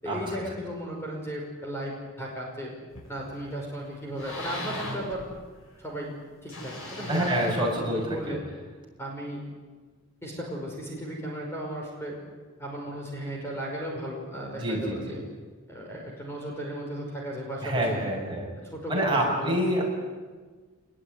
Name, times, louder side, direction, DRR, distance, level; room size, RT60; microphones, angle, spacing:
voice 1, 0.0-2.7 3.1-5.3 5.8-6.1 6.4-8.5 9.0-9.4 10.2-12.2 12.6-15.2 15.7-18.0 18.7-19.8, equal, 10° left, -1 dB, 5.6 m, -35 dB
sound 1, 2.9-3.5 3.9-5.8 6.5-8.3, left 1 dB, 80° left, 7.9 m, -38 dB
voice 2, 7.1-8.4 14.6-15.0 17.6-18.5 18.9-19.8, right 1 dB, 25° right, -2 dB, 7.0 m, -27 dB
25.5 x 21.5 x 9.7 m, 1.4 s
head